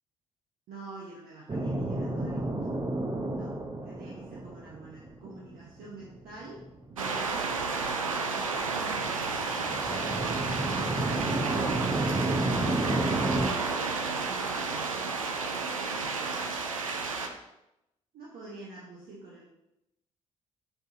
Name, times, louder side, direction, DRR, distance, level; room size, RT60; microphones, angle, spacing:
voice 1, 0.7-2.7 3.3-6.6 6.9-9.5 9.7-12.1 13.1-15.2 16.8-17.1 18.1-19.4, right 3 dB, 60° right, -4 dB, 1.2 m, -46 dB
sound 1, 1.5-13.5, right 2 dB, 25° right, 1.0 m, -32 dB
sound 2, 7.0-17.3, right 4 dB, 90° right, 0.4 m, -31 dB
11.5 x 4.0 x 2.7 m, 0.90 s
figure-of-eight pair, 45°, 17 cm